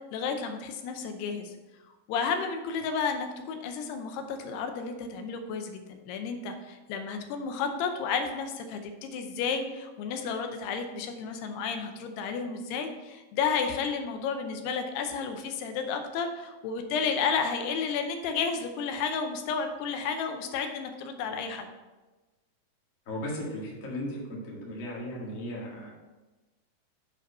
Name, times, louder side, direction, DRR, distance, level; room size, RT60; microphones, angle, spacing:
voice 1, 0.1-1.5 2.1-21.7, left 5 dB, 85° left, 6 dB, 2.8 m, -32 dB
voice 2, 23.0-25.9, left 1 dB, 40° left, -4 dB, 1.1 m, -36 dB
7.6 x 5.0 x 5.4 m, 1.1 s
omnidirectional pair, 4.6 m